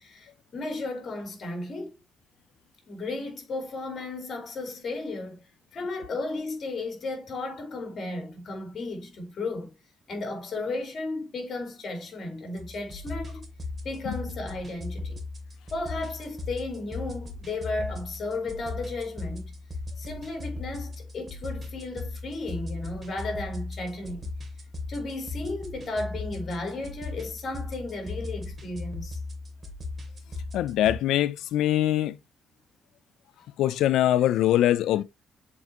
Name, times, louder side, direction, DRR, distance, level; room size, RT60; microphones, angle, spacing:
voice 1, 0.0-1.9 2.9-5.4 5.7-9.7 10.1-13.5 13.8-15.2 15.7-19.5 20.0-24.3 24.9-29.2, left 2 dB, 50° left, 3.1 m, -34 dB
sound 1, 12.6-31.0, left 3 dB, 30° right, 2.5 m, -38 dB
voice 2, 30.5-32.1 33.6-35.0, left 13 dB, 85° left, 0.4 m, -23 dB
7.2 x 4.5 x 2.9 m
cardioid pair, 90°, 0 cm